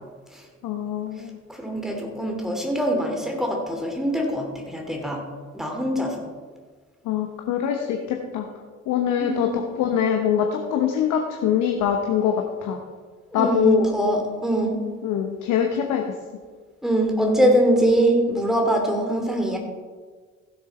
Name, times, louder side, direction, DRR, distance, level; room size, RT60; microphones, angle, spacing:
voice 1, 0.6-1.4 7.0-8.5 8.9-12.8 13.3-13.9 15.0-16.0, left 8 dB, 55° left, 3 dB, 1.1 m, -23 dB
voice 2, 1.5-5.2 5.5-6.2 9.2-9.6 13.3-14.8 16.8-19.6, right 1 dB, ahead, 1 dB, 2.8 m, -23 dB
15.5 x 7.1 x 4.3 m, 1.5 s
figure-of-eight pair, 50°, 38 cm